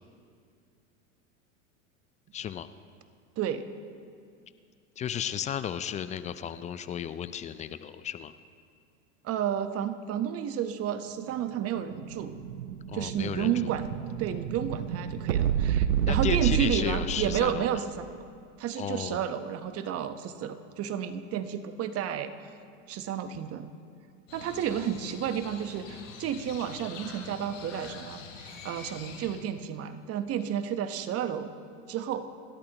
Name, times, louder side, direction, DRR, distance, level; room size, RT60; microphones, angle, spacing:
voice 1, 2.3-2.7 5.0-8.3 12.9-13.7 16.1-17.7 18.8-19.3 24.5-24.8, left 9 dB, 20° left, 13 dB, 0.3 m, -34 dB
voice 2, 3.4-3.7 9.2-12.3 12.9-13.9 14.2-17.8 18.6-22.3 22.9-23.7 24.3-31.5 31.9-32.3, right 9 dB, 40° right, 10 dB, 1.0 m, -31 dB
Explosion, 11.5-17.6, right 9 dB, 90° right, 0.8 m, -30 dB
Crow, 24.3-29.4, left 5 dB, 85° left, 3.3 m, -45 dB
28.0 x 13.0 x 3.0 m, 2.2 s
hypercardioid pair, 100°, 38 cm